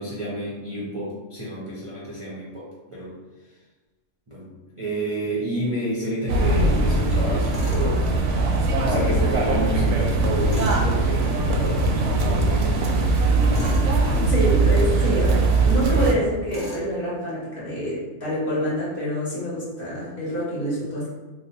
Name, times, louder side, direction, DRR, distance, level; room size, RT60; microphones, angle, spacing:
voice 1, 0.0-3.1 4.3-8.1 8.8-11.8 12.2-13.2, right 1 dB, 35° right, -8 dB, 0.5 m, -30 dB
sound 1, 6.3-16.1, right 2 dB, 75° right, 0.9 m, -20 dB
Tools, 7.5-7.9 10.5-10.9 13.5-13.9 16.5-16.9, equal, 20° left, 1.1 m, -36 dB
voice 2, 14.1-21.1, equal, 50° left, -7 dB, 1.3 m, -27 dB
2.9 x 2.1 x 3.9 m, 1.2 s
omnidirectional pair, 1.3 m